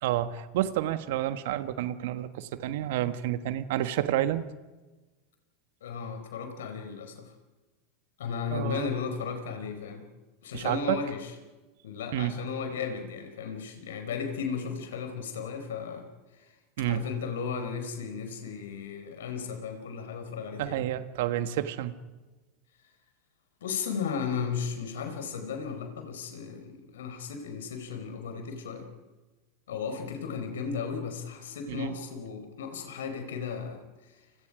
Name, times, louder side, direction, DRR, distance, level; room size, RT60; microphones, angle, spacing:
voice 1, 0.0-4.5 8.5-8.9 10.5-11.0 12.1-12.3 16.8-17.0 20.6-21.9 31.7-31.9, right 13 dB, 65° right, 11 dB, 1.5 m, -29 dB
voice 2, 5.8-7.3 8.2-10.0 10.4-11.3 11.8-16.1 16.3-20.8 23.6-28.9 29.7-34.3, left 6 dB, 75° left, 6 dB, 4.8 m, -35 dB
29.5 x 27.0 x 5.1 m, 1.2 s
hypercardioid pair, 90°, 0 cm